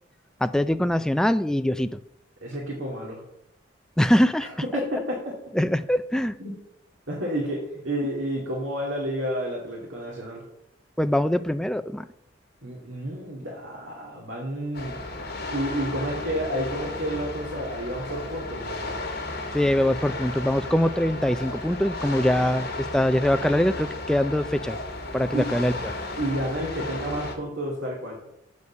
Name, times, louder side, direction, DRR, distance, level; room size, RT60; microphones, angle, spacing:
voice 1, 0.4-2.0 4.0-4.5 5.5-6.3 11.0-12.1 19.5-24.8 25.1-25.9, left 1 dB, 5° left, 11 dB, 0.3 m, -23 dB
voice 2, 2.4-3.2 4.4-5.2 6.4-6.5 7.1-10.4 12.6-15.0 15.5-19.0 25.3-25.5 26.2-28.2, equal, 85° right, -3 dB, 2.2 m, -30 dB
sound 1, 14.7-27.3, left 2 dB, 50° left, 2.0 m, -34 dB
8.0 x 5.3 x 6.8 m, 0.79 s
head